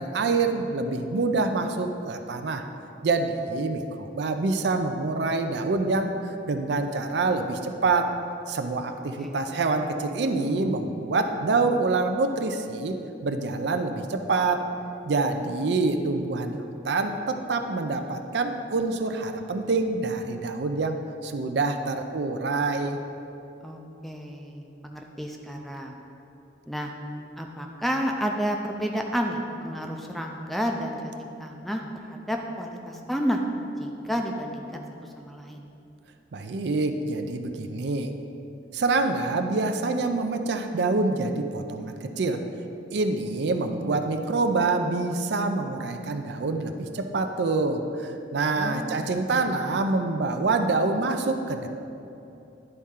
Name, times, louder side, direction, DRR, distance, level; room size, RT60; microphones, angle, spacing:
voice 1, 0.0-2.6 3.0-6.1 6.5-8.1 8.5-14.7 15.1-23.0 36.3-38.1 38.7-42.5 42.9-51.7, right 3 dB, 70° right, 6 dB, 0.5 m, -26 dB
voice 2, 23.6-26.0 26.7-26.9 27.4-33.4 33.8-34.8 35.2-35.6 48.6-49.0 49.3-49.6, equal, ahead, 2 dB, 0.4 m, -31 dB
10.5 x 4.2 x 3.7 m, 2.8 s
head